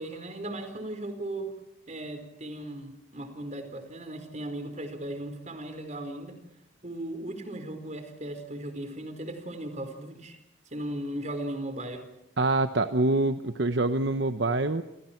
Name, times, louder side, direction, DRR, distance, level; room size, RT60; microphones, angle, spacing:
voice 1, 0.0-1.5 1.9-6.4 6.8-10.4 10.7-12.0, right 1 dB, 40° right, 7 dB, 4.6 m, -37 dB
voice 2, 12.4-14.8, right 2 dB, 65° right, 9 dB, 1.1 m, -25 dB
29.5 x 28.5 x 4.6 m, 0.88 s
head